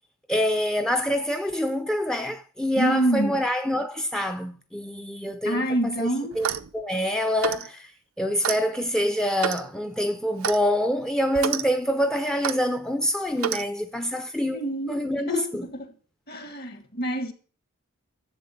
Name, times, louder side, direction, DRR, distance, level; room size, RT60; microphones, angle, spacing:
voice 1, 0.3-6.1 6.4-6.5 6.7-7.9 8.2-14.6 14.9-15.6, equal, 5° left, 0.6 m, -26 dB
voice 2, 2.8-3.4 5.4-6.4 14.5-15.9 16.3-17.3, right 1 dB, 45° left, 1.7 m, -27 dB
Clock, 6.3-6.7 7.4-7.7 8.4-8.6 9.4-9.7 10.4-10.6 11.3-11.6 12.4-12.6 13.4-13.6, right 7 dB, 70° right, 0.6 m, -28 dB
11.5 x 7.4 x 7.0 m
head